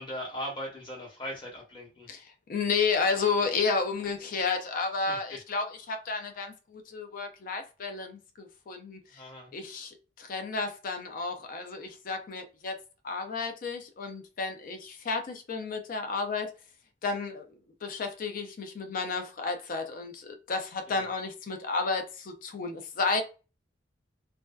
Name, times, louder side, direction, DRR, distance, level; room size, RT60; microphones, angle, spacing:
voice 1, 0.0-2.1 5.1-5.4 9.1-9.5 20.9-21.1, equal, 25° left, 1.0 m, -39 dB
voice 2, 2.1-9.2 9.5-12.8 13.0-16.5 17.0-17.5 17.8-23.2, left 4 dB, 50° left, 0.4 m, -32 dB
2.5 x 2.2 x 2.2 m
head